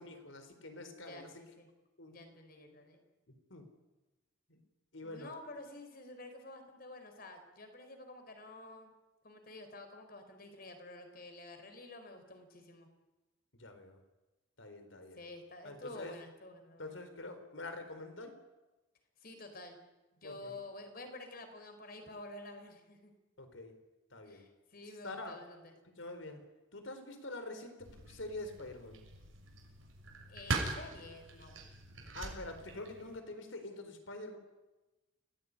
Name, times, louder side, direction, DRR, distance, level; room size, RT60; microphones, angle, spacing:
voice 1, 0.0-1.3 2.0-2.2 3.5-3.6 4.5-4.6 4.9-5.3 13.6-14.0 14.6-15.2 15.6-16.1 16.8-18.3 20.2-20.5 23.4-23.7 24.1-24.4 25.0-25.4 26.0-26.4 26.7-29.0 32.1-34.4, left 2 dB, 75° left, 8 dB, 4.3 m, -46 dB
voice 2, 0.9-1.7 2.1-3.0 5.0-8.9 9.2-12.9 15.1-16.9 19.2-19.8 20.1-23.1 24.2-25.7 30.3-31.6, left 2 dB, 50° left, 6 dB, 4.8 m, -50 dB
sound 1, 27.8-33.2, right 3 dB, 85° right, 6.7 m, -42 dB
29.0 x 18.5 x 9.8 m, 1.1 s
head